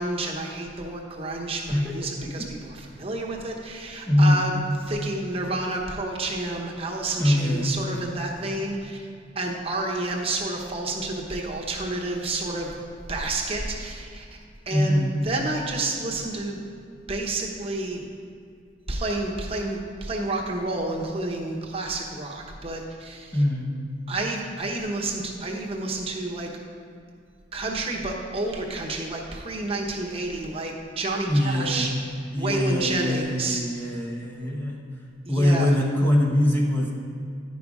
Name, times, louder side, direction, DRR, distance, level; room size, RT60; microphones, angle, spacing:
voice 1, 0.0-4.5 4.9-9.1 9.3-12.8 13.1-14.4 14.7-16.6 17.1-18.0 18.9-23.4 24.1-26.5 27.5-33.9 35.3-35.8, right 2 dB, 30° right, 0 dB, 1.0 m, -30 dB
voice 2, 4.1-4.4 7.2-7.8 14.7-15.2 23.3-23.7 31.3-31.9 32.3-34.8 35.3-36.9, left 1 dB, 10° left, -1 dB, 0.7 m, -22 dB
11.0 x 5.3 x 4.8 m, 2.4 s
head